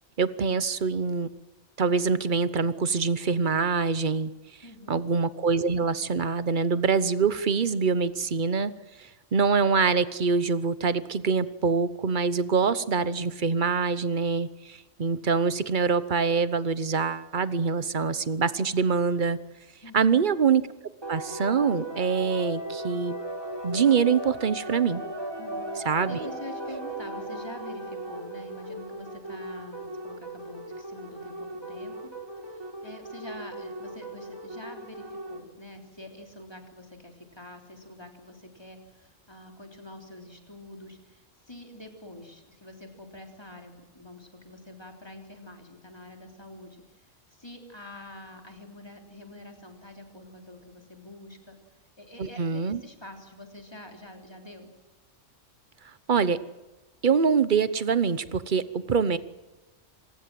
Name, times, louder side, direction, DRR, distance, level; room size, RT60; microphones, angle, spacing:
voice 1, 0.2-1.3 1.8-4.3 4.9-8.7 9.3-19.4 19.9-20.6 21.1-23.2 23.6-25.0 25.8-26.3 52.2-52.8 56.1-56.4 57.0-59.2, right 5 dB, 40° right, 15 dB, 1.0 m, -24 dB
voice 2, 4.6-5.1 19.8-20.2 25.4-32.1 32.4-51.6 52.0-54.7, left 1 dB, 20° left, 3 dB, 3.6 m, -46 dB
sound 1, 21.0-35.4, right 1 dB, 20° right, 3.0 m, -37 dB
26.5 x 18.5 x 7.7 m, 1.1 s
omnidirectional pair, 1.3 m